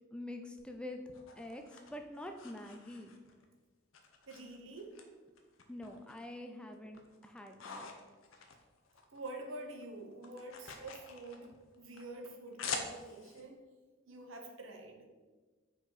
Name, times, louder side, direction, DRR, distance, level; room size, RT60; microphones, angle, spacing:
voice 1, 0.1-1.0 1.4-3.1 5.7-7.9, left 1 dB, 5° left, 4 dB, 0.4 m, -46 dB
sound 1, 0.6-3.4 3.9-5.0 5.4-6.4 6.7-9.3 9.6-13.4, left 5 dB, 85° left, 0.7 m, -46 dB
voice 2, 4.3-5.0 9.1-13.6 14.1-15.1, right 2 dB, 80° right, 3 dB, 1.0 m, -47 dB
5.3 x 4.7 x 4.0 m, 1.3 s
head